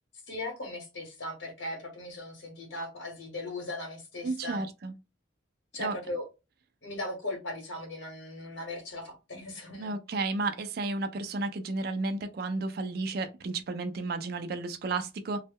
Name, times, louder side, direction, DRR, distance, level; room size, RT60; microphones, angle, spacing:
voice 1, 0.3-4.6 5.7-6.2 6.8-9.9, left 2 dB, 70° left, 1.0 m, -38 dB
voice 2, 4.2-4.9 5.8-6.0 9.8-15.4, right 3 dB, 50° right, 0.3 m, -32 dB
2.1 x 2.0 x 3.4 m
head